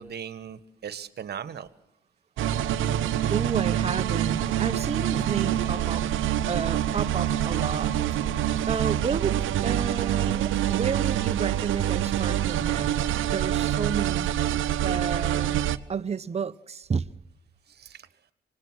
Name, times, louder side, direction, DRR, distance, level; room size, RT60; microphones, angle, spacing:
voice 1, 0.0-1.7 17.7-18.1, right 8 dB, 55° right, 1.6 m, -38 dB
sound 1, 2.4-15.8, right 11 dB, 80° right, 1.0 m, -26 dB
voice 2, 3.3-6.1 6.5-8.0 8.7-14.3 14.8-15.6 15.9-17.1, right 6 dB, 30° right, 1.0 m, -31 dB
sound 2, 6.9-12.5, left 2 dB, 35° left, 4.9 m, -46 dB
26.0 x 20.0 x 6.3 m
cardioid pair, 90°, 20 cm